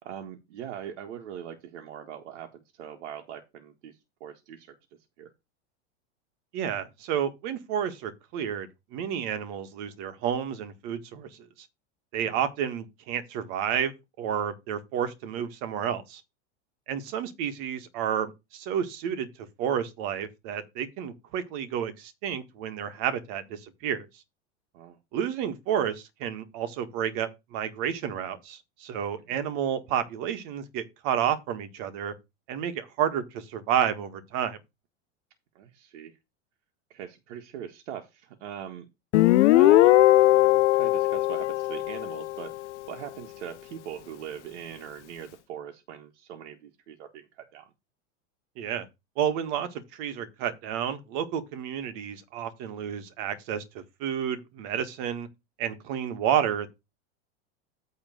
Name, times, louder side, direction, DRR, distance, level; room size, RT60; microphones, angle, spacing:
voice 1, 0.0-4.7 5.2-5.3 24.7-25.0 35.5-36.2 36.9-38.9 39.5-47.7, right 9 dB, 75° right, 1.6 m, -41 dB
voice 2, 6.5-11.3 12.1-13.9 14.2-16.2 16.9-19.3 19.6-24.1 25.1-32.1 32.5-34.6 48.6-48.9 49.2-55.3 55.6-56.7, right 9 dB, 55° right, 1.7 m, -30 dB
Guitar, 39.1-42.6, left 16 dB, 75° left, 0.7 m, -20 dB
8.9 x 3.7 x 6.3 m
supercardioid pair, 130°, 35 cm